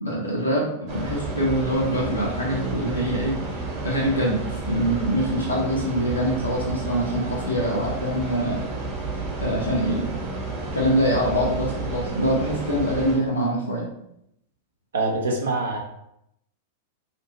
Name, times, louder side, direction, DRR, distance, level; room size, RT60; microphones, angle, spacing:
voice 1, 0.0-3.4 3.8-8.6 9.4-10.1 10.7-13.9, equal, 80° left, -5 dB, 0.6 m, -24 dB
sound 1, 0.9-13.2, right 3 dB, 40° right, 1.1 m, -31 dB
voice 2, 14.9-15.8, right 2 dB, 65° right, -1 dB, 0.5 m, -24 dB
2.5 x 2.3 x 2.9 m, 0.77 s
figure-of-eight pair, 95°, 0 cm